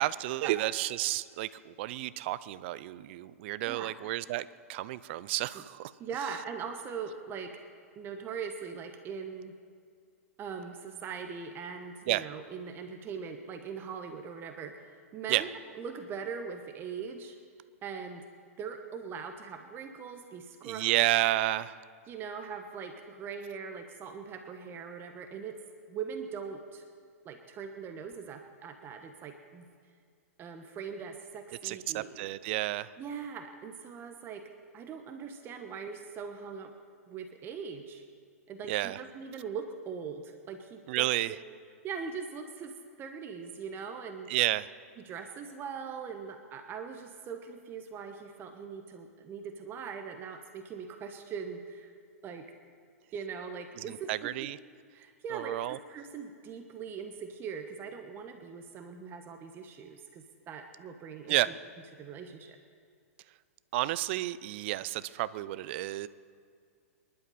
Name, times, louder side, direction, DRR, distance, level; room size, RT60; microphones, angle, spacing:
voice 1, 0.0-5.9 12.1-12.3 15.3-15.4 20.6-21.7 31.6-32.9 38.7-39.0 40.9-41.3 44.3-44.7 54.1-54.6 55.3-55.8 61.3-61.5 63.7-66.1, right 16 dB, 50° right, 17 dB, 0.6 m, -31 dB
voice 2, 6.0-7.6 8.0-9.5 10.4-15.5 15.7-17.4 17.8-18.2 18.6-20.9 22.1-25.6 25.9-26.8 27.2-29.6 30.4-32.3 33.0-34.5 34.7-36.7 37.1-38.0 38.5-41.4 41.8-44.3 45.0-51.9 52.2-52.5 53.1-54.5 54.9-61.4 61.9-62.6, right 6 dB, 30° right, 6 dB, 1.2 m, -41 dB
25.5 x 11.5 x 4.3 m, 2.2 s
hypercardioid pair, 115°, 8 cm